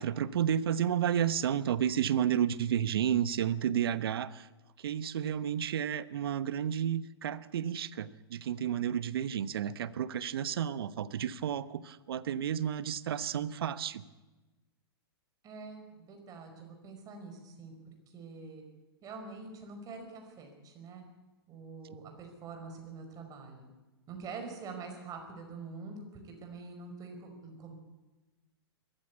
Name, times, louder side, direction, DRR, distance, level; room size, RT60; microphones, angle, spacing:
voice 1, 0.0-4.5 4.8-14.0, right 9 dB, 65° right, 16 dB, 1.0 m, -31 dB
voice 2, 15.4-17.7 18.1-18.6 19.0-21.0 21.5-23.7 24.1-27.7, right 4 dB, 25° right, 4 dB, 5.3 m, -45 dB
21.0 x 14.5 x 8.4 m, 1.1 s
hypercardioid pair, 115°, 14 cm